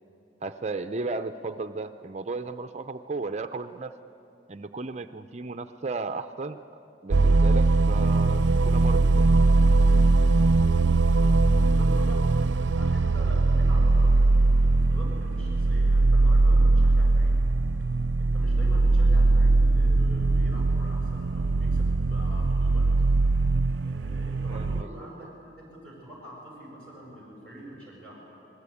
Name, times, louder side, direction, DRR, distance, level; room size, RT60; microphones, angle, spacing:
voice 1, 0.4-3.9 4.5-6.6 7.0-9.3 24.5-25.3, right 3 dB, 35° right, 9 dB, 0.6 m, -35 dB
sound 1, 7.1-24.8, right 3 dB, 85° right, 0.5 m, -21 dB
voice 2, 11.3-12.2 12.8-17.3 18.2-22.9 23.8-25.3 25.8-28.2, right 1 dB, 5° left, -4 dB, 6.9 m, -44 dB
28.0 x 20.5 x 8.5 m, 2.9 s
head